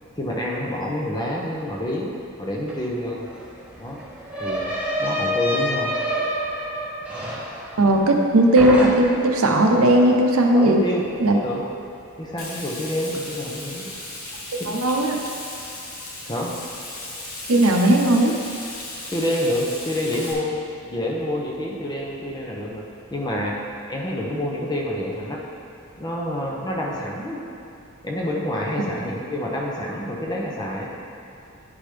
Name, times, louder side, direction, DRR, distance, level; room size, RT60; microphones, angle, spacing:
voice 1, 0.2-2.1 2.4-3.3 3.8-4.0 4.4-4.7 5.0-6.0 10.5-11.0 11.4-11.6 12.2-13.9 14.6-14.8 16.3-16.5 19.1-20.5 20.9-22.8 23.1-25.4 26.0-27.4 28.0-30.9, left 1 dB, 20° left, -3 dB, 0.8 m, -27 dB
sound 1, 2.7-2.8 3.0-8.3 8.6-9.3, equal, 5° right, 1.2 m, -27 dB
voice 2, 7.8-10.8 11.2-11.4 14.5-15.2 17.5-18.3, right 1 dB, 85° right, 2 dB, 0.8 m, -17 dB
Frying (food), 12.4-20.3, left 2 dB, 80° left, 1.3 m, -36 dB
10.0 x 4.9 x 3.3 m, 2.6 s
head